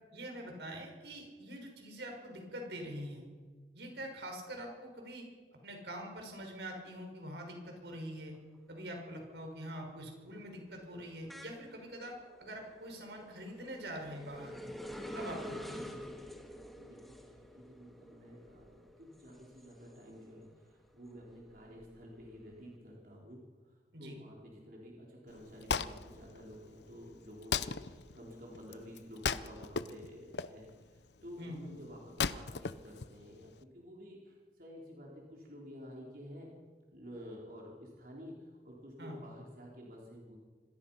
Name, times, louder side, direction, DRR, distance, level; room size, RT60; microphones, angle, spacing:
voice 1, 0.1-3.2 3.7-5.3 5.6-8.4 8.7-14.7 15.1-15.9 23.9-24.2 31.4-31.6 39.0-39.2, equal, 80° right, 2 dB, 5.8 m, -44 dB
sound 1, 8.4-8.8 9.2-20.4 20.8-22.5, equal, ahead, 1.9 m, -48 dB
voice 2, 16.7-36.5 36.9-40.4, equal, 55° right, -3 dB, 4.4 m, -51 dB
Wood, 25.3-33.6, left 6 dB, 80° left, 0.8 m, -38 dB
26.5 x 20.0 x 5.8 m, 1.5 s
head